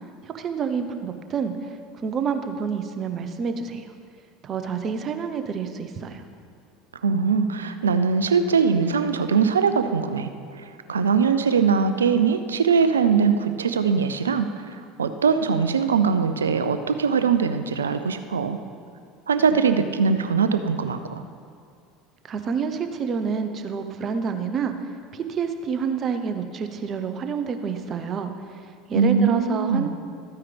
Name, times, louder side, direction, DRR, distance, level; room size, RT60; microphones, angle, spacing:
voice 1, 0.2-3.9 4.4-6.2 22.3-28.6 28.9-29.9, right 6 dB, 40° right, 7 dB, 0.9 m, -28 dB
voice 2, 7.0-10.3 10.6-14.7 15.0-18.6 19.3-21.2 28.9-29.9, right 5 dB, 90° right, 10 dB, 0.5 m, -21 dB
14.0 x 9.4 x 3.4 m, 2.3 s
hypercardioid pair, 75°, 0 cm